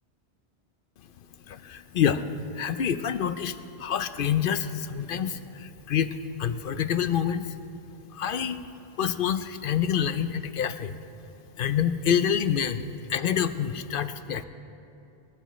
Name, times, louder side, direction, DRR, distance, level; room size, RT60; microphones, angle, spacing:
voice 1, 1.5-7.6 8.1-8.6 9.0-10.9 11.6-14.4, left 8 dB, 65° left, 11 dB, 0.7 m, -27 dB
21.0 x 13.0 x 3.1 m, 2.8 s
omnidirectional pair, 1.0 m